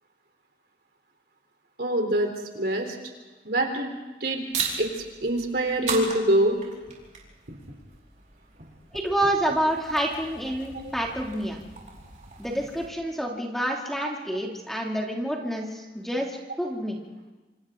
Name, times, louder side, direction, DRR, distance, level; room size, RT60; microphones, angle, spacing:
voice 1, 1.8-3.0 3.4-3.9 4.2-4.4 4.8-6.6, right 1 dB, 65° right, 3 dB, 3.8 m, -25 dB
sound 1, 4.5-12.9, right 5 dB, 45° right, 4.9 m, -38 dB
voice 2, 8.9-11.6 12.4-17.0, right 1 dB, ahead, -1 dB, 2.8 m, -28 dB
27.5 x 27.0 x 3.9 m, 1.2 s
head